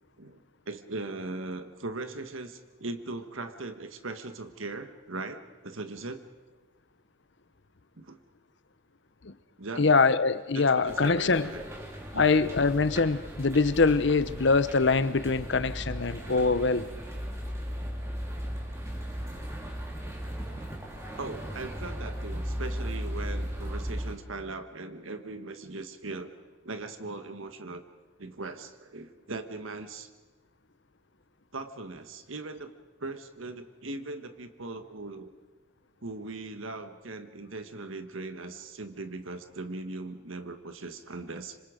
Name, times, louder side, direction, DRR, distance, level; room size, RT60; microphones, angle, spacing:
voice 1, 0.2-6.2 8.0-8.2 9.6-9.9 10.5-11.6 12.1-12.3 21.2-26.3 26.6-27.8 28.2-30.1 31.5-32.7 33.0-35.3 36.0-41.6, right 3 dB, 80° right, 8 dB, 1.5 m, -39 dB
voice 2, 9.8-11.5 12.1-16.9, left 4 dB, 60° left, 15 dB, 0.8 m, -24 dB
sound 1, 10.9-24.1, equal, 15° right, 3.4 m, -37 dB
26.0 x 26.0 x 5.2 m, 1.2 s
head